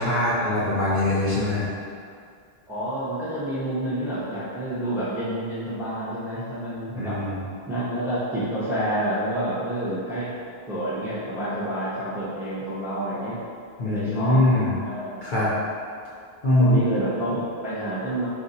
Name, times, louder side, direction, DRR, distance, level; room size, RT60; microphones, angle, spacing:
voice 1, 0.0-1.7 7.0-7.4 13.8-14.7 15.2-15.5 16.4-16.9, left 1 dB, 55° left, -8 dB, 0.7 m, -22 dB
voice 2, 2.7-7.2 7.7-10.3 10.7-13.4 13.8-15.1 16.6-18.3, right 1 dB, 5° right, -10 dB, 0.6 m, -28 dB
2.6 x 2.4 x 4.0 m, 2.2 s
omnidirectional pair, 1.1 m